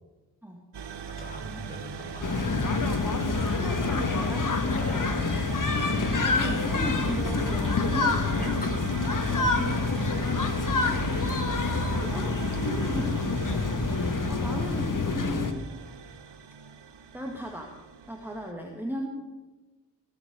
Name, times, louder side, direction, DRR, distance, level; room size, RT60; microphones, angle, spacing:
sound 1, 0.7-18.5, right 6 dB, 70° right, 1.1 m, -40 dB
voice 1, 1.2-2.6 4.7-5.1 8.4-8.8, left 2 dB, 20° left, 0 dB, 5.3 m, -40 dB
sound 2, 2.2-15.5, left 3 dB, 45° left, 1.7 m, -27 dB
voice 2, 3.5-4.5 6.2-8.5 9.2-13.6 14.3-15.7 17.1-17.8 18.1-19.1, equal, 5° right, 1 dB, 2.0 m, -37 dB
17.5 x 7.7 x 6.8 m, 1.2 s
cardioid pair, 55°, 43 cm